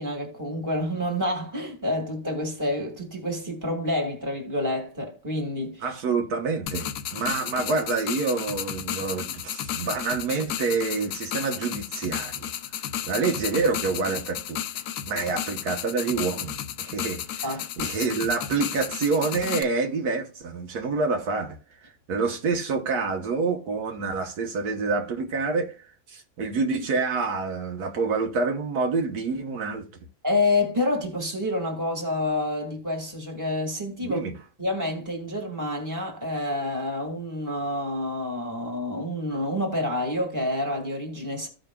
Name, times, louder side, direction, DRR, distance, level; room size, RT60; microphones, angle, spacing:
voice 1, 0.0-5.8 17.4-17.9 30.2-34.2 34.6-41.5, left 1 dB, 10° right, 1.8 m, -28 dB
voice 2, 5.8-12.5 13.0-14.6 15.1-21.6 22.1-29.9 34.0-34.3, right 4 dB, 75° right, 1.5 m, -27 dB
sound 1, 6.7-19.6, left 10 dB, 80° left, 1.1 m, -33 dB
15.0 x 5.1 x 2.2 m
omnidirectional pair, 1.7 m